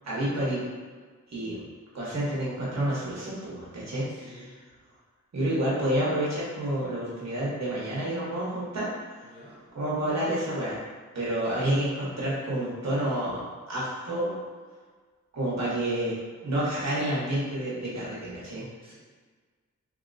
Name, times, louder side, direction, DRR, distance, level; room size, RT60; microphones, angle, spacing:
voice 1, 0.0-0.6 1.3-1.6 1.9-4.5 5.3-8.9 9.7-10.8 11.1-14.4 15.3-16.1 16.4-18.9, right 1 dB, 60° right, -7 dB, 1.1 m, -29 dB
voice 2, 4.0-4.5 9.3-9.6 11.2-11.8 18.8-19.0, equal, 20° right, -9 dB, 0.8 m, -51 dB
3.1 x 2.9 x 2.5 m, 1.5 s
wide cardioid pair, 120°, 30 cm